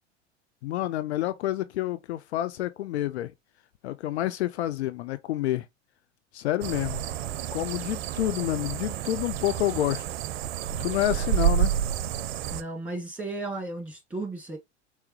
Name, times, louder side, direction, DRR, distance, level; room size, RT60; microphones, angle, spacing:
voice 1, 0.6-3.3 3.8-5.7 6.3-7.0 7.5-10.0 10.8-11.7, left 14 dB, 65° left, 0.5 m, -28 dB
sound 1, 6.6-12.6, right 10 dB, 60° right, 0.5 m, -29 dB
voice 2, 12.5-14.6, right 2 dB, 5° right, 1.8 m, -35 dB
4.5 x 3.1 x 2.9 m
figure-of-eight pair, 80°, 35 cm